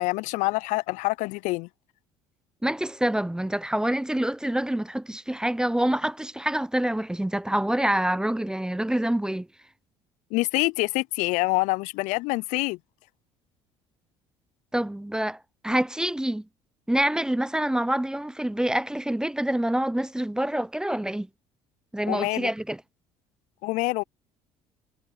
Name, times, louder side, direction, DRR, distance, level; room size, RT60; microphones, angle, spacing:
voice 1, 0.0-1.7 10.3-12.8 22.1-22.5 23.6-24.0, left 23 dB, 65° left, 0.5 m, -26 dB
voice 2, 2.6-9.5 14.7-15.4 15.6-16.5 16.9-21.3 21.9-22.8, right 1 dB, 5° right, 0.6 m, -26 dB
hypercardioid pair, 60°, 13 cm